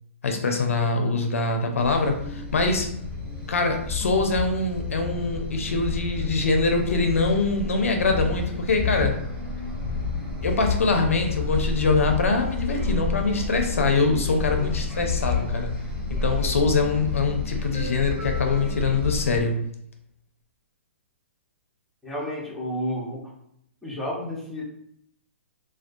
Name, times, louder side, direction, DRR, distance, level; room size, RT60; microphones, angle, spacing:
voice 1, 0.2-2.9 3.5-9.2 10.4-15.8 16.1-19.6, left 3 dB, 85° left, 4 dB, 0.4 m, -24 dB
sound 1, 1.8-19.4, left 3 dB, 15° right, 1.1 m, -30 dB
voice 2, 22.0-23.2 23.8-24.6, equal, 5° left, -6 dB, 0.8 m, -31 dB
2.2 x 2.2 x 2.5 m, 0.72 s
hypercardioid pair, 130°, 7 cm